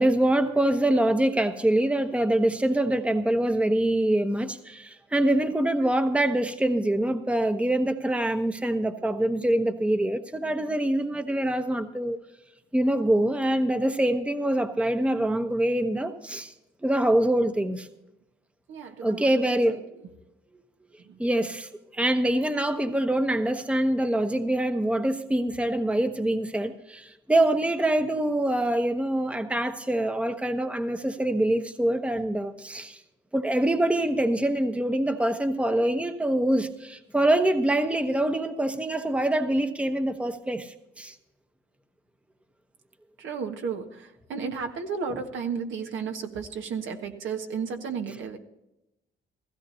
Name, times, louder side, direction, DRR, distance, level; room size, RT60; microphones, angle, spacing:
voice 1, 0.0-12.2 12.7-16.5 16.8-17.9 19.0-19.8 21.2-33.0 33.3-41.1, right 1 dB, 5° right, 1.0 m, -25 dB
voice 2, 18.7-19.8 21.0-21.2 43.2-48.4, right 5 dB, 75° right, 1.7 m, -33 dB
16.0 x 15.5 x 2.8 m
cardioid pair, 90°, 20 cm